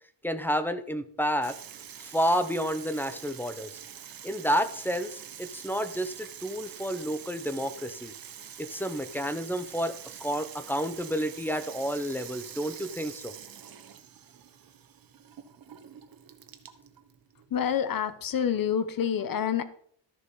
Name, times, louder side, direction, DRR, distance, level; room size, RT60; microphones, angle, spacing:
voice 1, 0.2-1.6 2.0-3.7 4.2-8.1 8.6-9.9 10.2-13.3, equal, 5° left, 10 dB, 0.7 m, -30 dB
Water tap faucet / Sink (filling or washing), 1.4-18.9, right 8 dB, 50° right, 1.2 m, -46 dB
voice 2, 17.5-19.6, left 8 dB, 50° left, 13 dB, 1.0 m, -27 dB
13.5 x 6.9 x 5.5 m, 0.62 s
wide cardioid pair, 170°, 44 cm